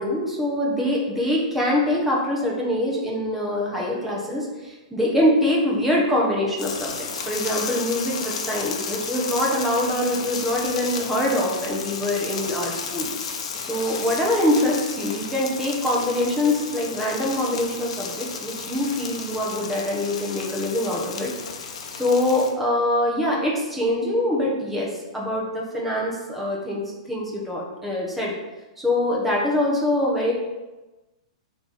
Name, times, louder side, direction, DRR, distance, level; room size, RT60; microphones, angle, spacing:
voice 1, 0.0-13.1 13.7-21.3 21.9-26.8 27.1-28.3 28.8-30.3, left 1 dB, 5° right, -3 dB, 1.1 m, -24 dB
sound 1, 6.6-22.5, left 5 dB, 60° left, 0.8 m, -33 dB
7.6 x 3.2 x 4.2 m, 1.1 s
hypercardioid pair, 165°, 4 cm